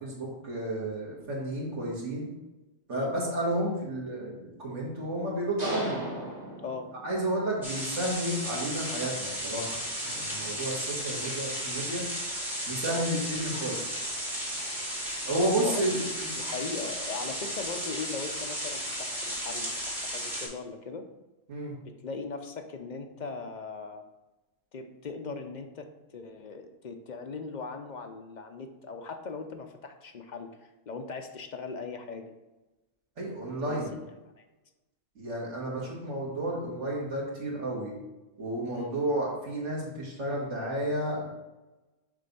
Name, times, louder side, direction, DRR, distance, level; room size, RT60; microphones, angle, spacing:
voice 1, 0.0-2.3 2.9-5.9 7.0-12.1 12.7-14.0 15.2-16.3 21.5-21.8 33.2-33.9 35.2-37.9 38.4-41.3, right 1 dB, 70° right, -4 dB, 2.2 m, -31 dB
sound 1, 5.6-7.4, right 1 dB, 35° right, 1.6 m, -36 dB
sound 2, 7.6-20.5, equal, ahead, 2.0 m, -34 dB
voice 2, 15.6-16.0 16.4-21.1 21.8-24.0 24.7-25.9 26.1-32.3 33.6-34.0 34.4-34.5 38.6-38.9, left 4 dB, 50° left, 5 dB, 0.6 m, -39 dB
7.0 x 3.3 x 5.3 m, 1.1 s
omnidirectional pair, 1.3 m